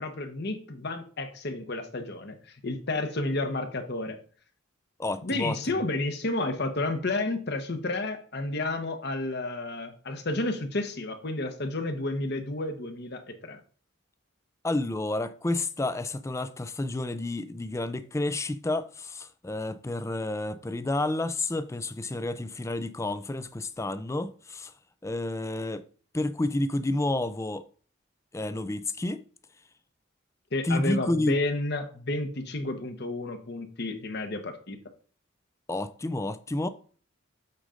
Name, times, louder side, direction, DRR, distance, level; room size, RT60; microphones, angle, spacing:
voice 1, 0.0-2.3 2.6-4.2 5.2-13.6 30.5-34.8, left 2 dB, 55° left, 1.0 m, -31 dB
voice 2, 5.0-5.6 14.6-24.7 25.0-25.8 26.1-27.7 28.3-29.2 30.6-31.4 35.7-36.7, left 2 dB, 15° left, 0.4 m, -30 dB
8.3 x 3.7 x 5.1 m
head